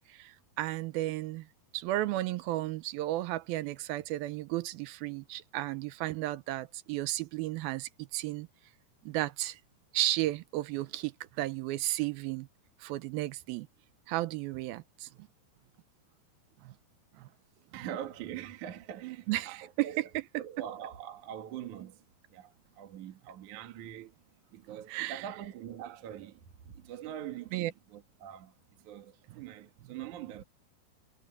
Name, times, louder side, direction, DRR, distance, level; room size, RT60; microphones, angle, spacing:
voice 1, 0.0-1.5 1.7-8.5 9.0-9.6 9.9-12.5 12.8-13.7 14.1-15.3 16.6-16.7 17.2-17.3 19.3-19.9 20.1-20.2 24.9-25.3 27.5-27.7, right 16 dB, 80° right, 2.3 m, -34 dB
voice 2, 17.7-20.1 20.4-24.2 24.5-30.4, right 10 dB, 55° right, 2.7 m, -43 dB
omnidirectional pair, 4.8 m